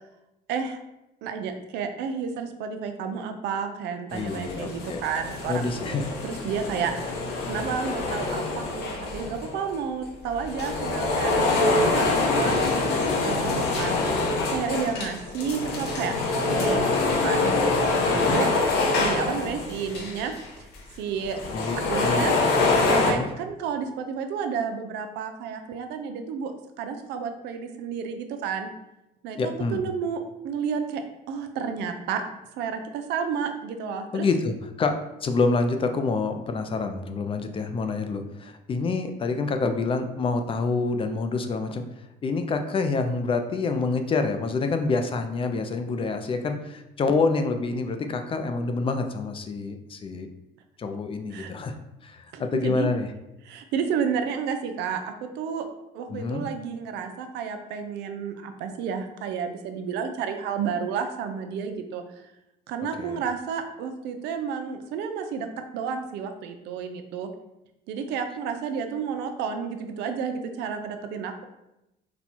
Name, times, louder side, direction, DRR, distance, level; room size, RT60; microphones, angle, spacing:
voice 1, 1.2-6.0 6.2-6.9 7.4-16.1 16.5-16.9 17.2-17.6 18.1-18.5 19.0-20.3 20.6-20.7 21.0-21.4 21.8-22.4 22.9-26.5 26.8-28.7 29.2-31.0 31.3-32.2 32.6-34.3 51.3-51.5 52.3-52.9 53.4-55.7 55.9-62.2 62.7-65.5 65.7-67.3 67.9-71.4, right 6 dB, 85° right, 6 dB, 0.5 m, -31 dB
sound 1, 4.1-9.7 10.3-20.5 20.7-20.8 21.2-23.1, left 3 dB, 75° left, 0.9 m, -25 dB
voice 2, 4.1-5.0 5.5-6.1 12.5-12.6 18.1-18.4 21.5-21.8 22.0-22.2 22.8-23.3 29.4-29.8 34.1-41.8 42.2-50.3 50.8-51.7 52.0-53.1 56.1-56.4 63.0-63.2, left 3 dB, 30° left, 7 dB, 0.4 m, -27 dB
4.2 x 2.3 x 4.2 m, 0.90 s
cardioid pair, 110°, 17 cm